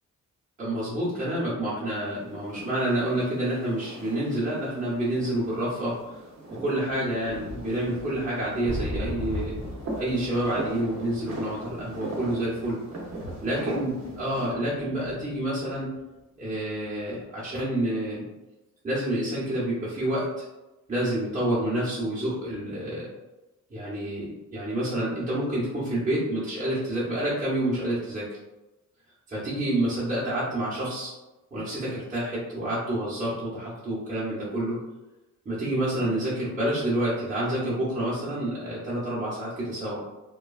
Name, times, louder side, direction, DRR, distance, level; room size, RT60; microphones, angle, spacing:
voice 1, 0.6-6.2 6.5-9.6 10.0-12.8 13.4-15.9 16.4-18.2 18.8-20.3 20.9-23.1 23.7-28.2 29.3-31.1 31.5-34.8 35.4-40.0, right 1 dB, 25° right, -9 dB, 0.8 m, -28 dB
sound 1, 1.9-14.5, right 2 dB, 55° right, 0.8 m, -40 dB
sound 2, 7.1-16.7 17.1-17.2, left 1 dB, 75° left, 0.5 m, -39 dB
3.0 x 2.2 x 2.3 m, 1.0 s
wide cardioid pair, 145°, 32 cm